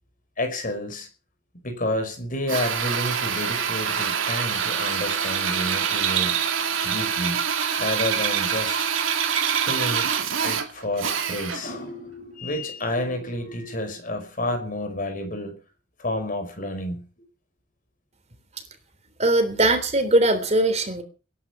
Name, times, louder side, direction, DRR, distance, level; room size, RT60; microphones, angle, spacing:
voice 1, 0.4-1.1 1.6-6.4 6.8-7.4 7.8-8.9 9.4-10.1 10.4-15.6 16.0-17.1, left 1 dB, 45° left, 7 dB, 5.0 m, -30 dB
Drill, 2.5-11.7, right 7 dB, 80° right, 2.7 m, -25 dB
voice 2, 19.2-21.0, right 2 dB, 35° right, 9 dB, 3.4 m, -20 dB
20.5 x 11.0 x 5.9 m, 0.36 s
head